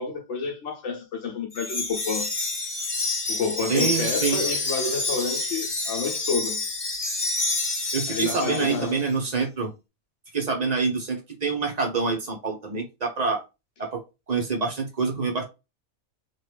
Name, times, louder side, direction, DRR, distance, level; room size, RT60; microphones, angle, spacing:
voice 1, 0.0-2.3 3.3-6.6 8.1-9.0, left 5 dB, 60° left, 0.9 m, -29 dB
Wind chime, 1.5-9.0, left 2 dB, 35° left, 0.4 m, -28 dB
voice 2, 3.7-4.4 7.9-9.7 10.3-13.4 13.8-14.0 14.3-15.4, right 4 dB, 55° right, 0.4 m, -26 dB
2.9 x 2.3 x 3.1 m
omnidirectional pair, 1.5 m